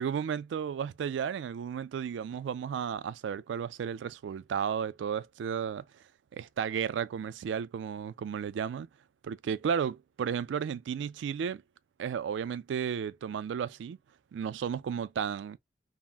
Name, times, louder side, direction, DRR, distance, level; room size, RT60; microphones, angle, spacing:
voice 1, 0.0-5.8 6.3-8.9 9.2-11.6 12.0-14.0 14.3-15.6, right 7 dB, 85° right, 0.3 m, -33 dB
3.4 x 2.1 x 2.3 m
head